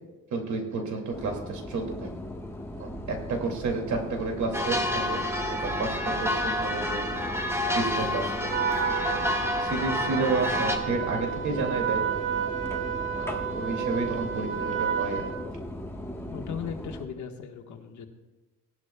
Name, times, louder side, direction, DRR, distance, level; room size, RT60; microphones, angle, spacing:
voice 1, 0.3-2.1 2.8-5.2 5.6-7.1 7.7-8.5 9.0-9.2 9.6-12.0 13.2-15.2, right 3 dB, 70° right, 2 dB, 2.5 m, -31 dB
sound 1, 1.1-17.0, left 1 dB, 10° left, 1.3 m, -38 dB
sound 2, 4.5-10.8, left 1 dB, 10° right, 1.6 m, -29 dB
Trumpet, 8.5-15.4, right 8 dB, 40° right, 1.7 m, -31 dB
voice 2, 16.3-18.1, left 7 dB, 70° left, 4 dB, 1.5 m, -38 dB
18.0 x 11.5 x 2.3 m, 1.2 s
cardioid pair, 90°, 30 cm